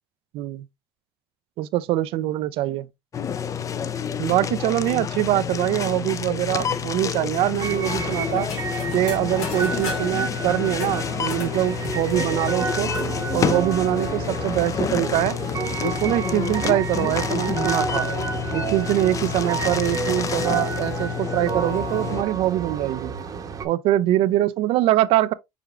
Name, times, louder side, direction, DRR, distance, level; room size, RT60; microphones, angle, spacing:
voice 1, 0.3-0.7 1.6-2.9 4.2-8.5 8.9-12.9 13.3-15.3 15.8-18.1 18.5-23.1 23.6-25.3, right 14 dB, 70° right, 0.4 m, -23 dB
sound 1, 3.1-22.2, left 7 dB, 35° left, 0.5 m, -28 dB
sound 2, 7.6-23.7, right 5 dB, 35° right, 0.8 m, -31 dB
sound 3, 8.3-10.2 10.7-13.1 13.5-13.6 13.8-14.5, left 5 dB, 85° left, 2.0 m, -37 dB
4.9 x 4.7 x 2.3 m
cardioid pair, 110°, 10 cm